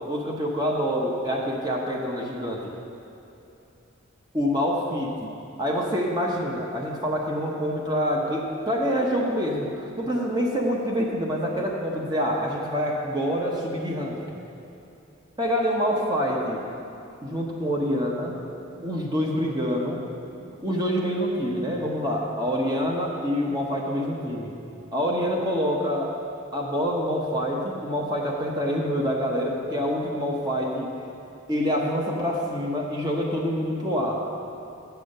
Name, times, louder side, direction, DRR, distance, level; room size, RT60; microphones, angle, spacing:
voice 1, 0.1-2.6 4.3-5.3 5.6-14.2 15.4-16.6 17.2-18.4 18.8-20.0 20.6-24.5 24.9-26.1 26.5-30.9 31.5-34.2, equal, 20° right, -1 dB, 0.8 m, -26 dB
7.8 x 6.9 x 6.5 m, 2.8 s
head